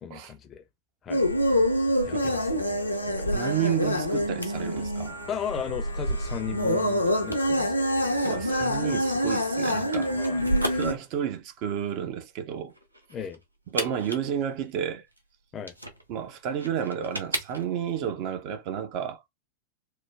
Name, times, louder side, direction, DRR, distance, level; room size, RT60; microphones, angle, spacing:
voice 1, 0.0-0.6 1.0-1.2 2.1-2.7 5.3-7.7 10.1-10.4 13.1-13.4 15.5-15.7, left 8 dB, 25° left, 0.5 m, -36 dB
sound 1, 1.1-10.9, equal, 85° left, 0.6 m, -26 dB
voice 2, 3.3-5.2 8.2-10.1 10.4-12.7 13.7-15.0 16.1-19.2, right 9 dB, 45° right, 0.6 m, -31 dB
Singing, 5.1-10.8, equal, 65° right, 1.5 m, -45 dB
sound 2, 7.8-18.0, equal, 85° right, 0.6 m, -38 dB
3.1 x 2.1 x 2.4 m
figure-of-eight pair, 90°, 0 cm